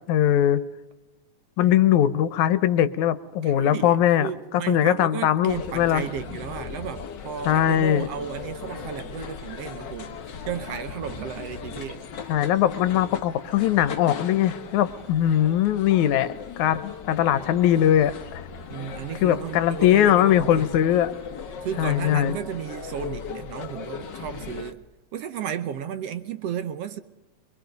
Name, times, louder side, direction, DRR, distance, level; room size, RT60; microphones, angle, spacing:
voice 1, 0.1-0.6 1.6-4.3 4.7-6.0 7.5-8.1 12.3-18.4 19.2-21.1 21.8-22.4, left 11 dB, 85° left, 2.3 m, -21 dB
voice 2, 3.4-12.0 18.7-20.8 21.6-24.8 25.1-27.0, right 9 dB, 65° right, 1.7 m, -34 dB
sound 1, 5.5-24.7, left 6 dB, 50° left, 1.4 m, -37 dB
24.0 x 23.0 x 5.2 m
omnidirectional pair, 3.3 m